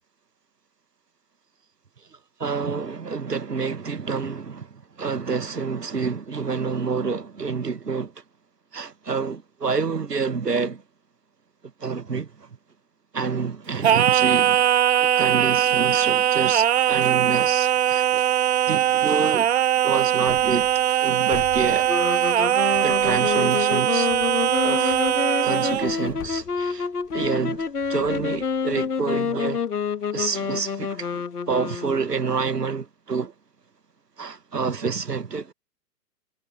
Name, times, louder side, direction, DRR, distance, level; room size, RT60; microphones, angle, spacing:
voice 1, 2.1-8.1 8.7-10.8 11.8-12.5 13.1-14.7 15.0-18.2 18.7-19.5 19.8-20.7 21.0-21.9 22.8-24.1 24.6-25.0 25.4-26.9 27.1-29.6 30.1-33.3 34.2-35.5, right 5 dB, 75° right, 1.6 m, -28 dB
Singing, 13.8-25.9, right 10 dB, 40° right, 1.0 m, -21 dB
sound 1, 20.2-21.0 21.3-22.4 22.7-23.6 24.1-29.2, left 22 dB, 30° left, 3.1 m, -45 dB
sound 2, 21.9-32.3, left 6 dB, 65° left, 1.6 m, -28 dB
figure-of-eight pair, 120°, 48 cm